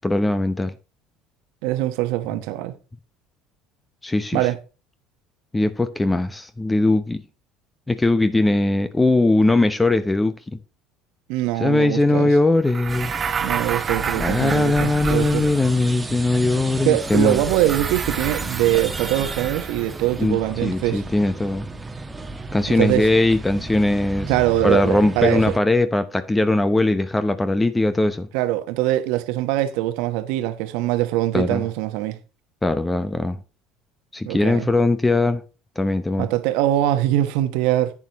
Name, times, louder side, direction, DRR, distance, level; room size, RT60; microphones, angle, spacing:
voice 1, 0.0-0.7 4.0-4.5 5.5-7.2 7.9-10.6 11.6-13.1 14.2-17.4 20.2-21.7 22.5-24.3 24.6-28.3 31.3-31.6 32.6-33.4 34.1-35.4 35.8-36.3, left 2 dB, 15° left, 0.8 m, -20 dB
voice 2, 1.6-2.8 4.3-4.6 11.3-12.3 13.4-15.5 16.8-21.0 22.8-23.1 24.3-25.5 28.3-32.2 34.2-34.7 36.2-37.9, right 14 dB, 75° right, 1.1 m, -22 dB
sound 1, 12.6-15.9 17.0-20.1, right 6 dB, 40° right, 1.2 m, -30 dB
sound 2, 12.9-25.6, right 2 dB, 20° right, 1.3 m, -33 dB
10.5 x 8.7 x 3.0 m
hypercardioid pair, 80°, 0 cm